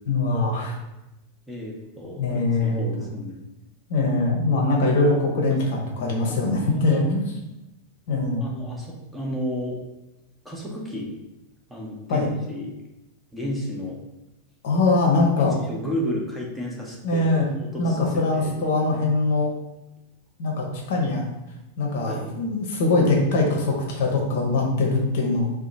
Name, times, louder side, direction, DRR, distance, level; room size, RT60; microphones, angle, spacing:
voice 1, 0.1-0.7 2.2-2.8 3.9-7.3 8.1-8.5 12.1-12.3 14.6-15.5 17.0-17.5 17.8-19.5 20.4-21.2 21.8-25.5, left 2 dB, 55° left, 0 dB, 0.7 m, -22 dB
voice 2, 1.5-2.2 2.6-3.4 6.3-6.4 6.7-7.0 8.4-9.8 10.4-11.2 11.7-12.7 13.3-14.0 15.4-17.3 17.6-18.6 22.1-22.3, equal, 5° right, -3 dB, 0.7 m, -32 dB
2.8 x 2.1 x 4.0 m, 0.95 s
figure-of-eight pair, 90°, 0 cm